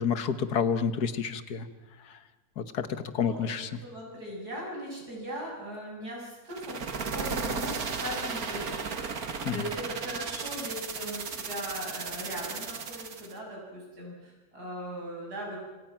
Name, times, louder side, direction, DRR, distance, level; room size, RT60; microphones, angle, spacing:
voice 1, 0.0-1.7 2.0-2.2 2.6-3.7 9.4-9.7, left 7 dB, 85° left, 11 dB, 1.8 m, -29 dB
voice 2, 3.2-15.6, equal, 85° right, -2 dB, 8.1 m, -39 dB
sound 1, 6.5-13.3, right 5 dB, 70° right, 2.1 m, -35 dB
27.0 x 27.0 x 6.0 m, 1.2 s
omnidirectional pair, 1.6 m